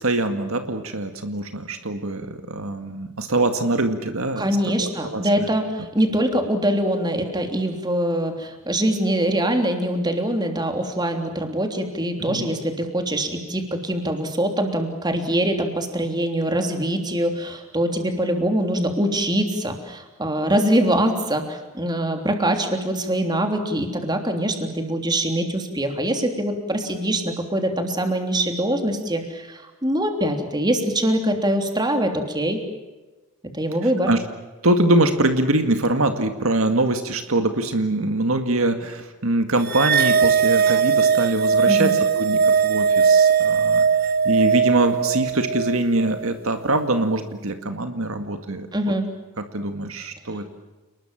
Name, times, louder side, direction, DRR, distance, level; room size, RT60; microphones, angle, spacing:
voice 1, 0.0-4.5 4.8-5.5 12.2-12.5 34.1-34.2 34.6-43.8 44.2-48.9 49.5-50.5, right 2 dB, 65° right, 7 dB, 2.1 m, -23 dB
voice 2, 4.4-32.6 33.5-34.1 41.6-41.9 48.7-49.0, right 1 dB, 20° right, 5 dB, 3.3 m, -23 dB
sound 1, 39.7-46.2, right 6 dB, 45° right, 0.8 m, -19 dB
30.0 x 20.5 x 7.5 m, 1.1 s
head